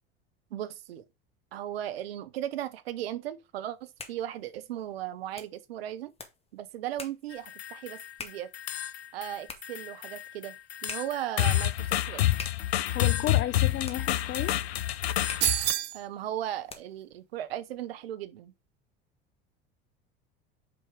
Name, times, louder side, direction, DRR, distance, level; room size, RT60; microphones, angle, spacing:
voice 1, 0.5-1.0 1.5-6.1 6.5-8.5 9.1-10.6 10.8-12.2 15.9-18.5, right 12 dB, 80° right, 0.8 m, -37 dB
sound 1, 3.7-17.1, left 4 dB, 20° left, 1.6 m, -48 dB
sound 2, 7.3-8.1 8.5-9.4 9.6-15.7, left 13 dB, 90° left, 0.5 m, -29 dB
voice 2, 12.9-14.6, left 12 dB, 40° left, 0.5 m, -32 dB
sound 3, 15.4-16.0, right 15 dB, 35° right, 0.4 m, -26 dB
5.9 x 4.7 x 4.6 m
hypercardioid pair, 75°, 30 cm